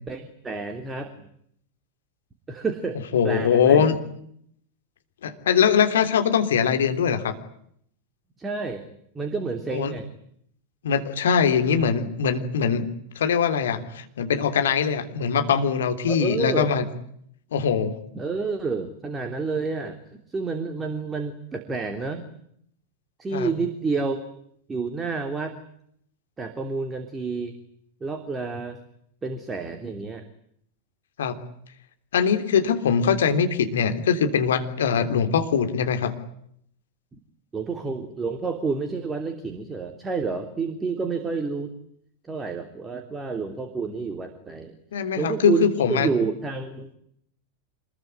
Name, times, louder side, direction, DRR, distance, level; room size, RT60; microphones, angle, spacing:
voice 1, 0.1-1.3 2.5-3.0 3.2-3.8 8.4-8.8 9.1-10.1 16.1-16.7 18.1-20.0 20.3-22.3 23.2-24.2 24.7-25.5 26.4-27.5 28.0-28.8 29.2-30.2 37.5-41.7 42.2-44.7 45.2-46.9, right 4 dB, 15° right, 6 dB, 3.1 m, -29 dB
voice 2, 3.1-4.0 5.2-7.3 9.7-9.9 10.8-12.8 13.1-16.8 17.5-18.0 23.3-23.5 31.2-31.4 32.1-36.1 44.9-46.1, left 7 dB, 60° left, 7 dB, 3.3 m, -22 dB
27.0 x 21.5 x 9.4 m, 0.70 s
figure-of-eight pair, 90°, 0 cm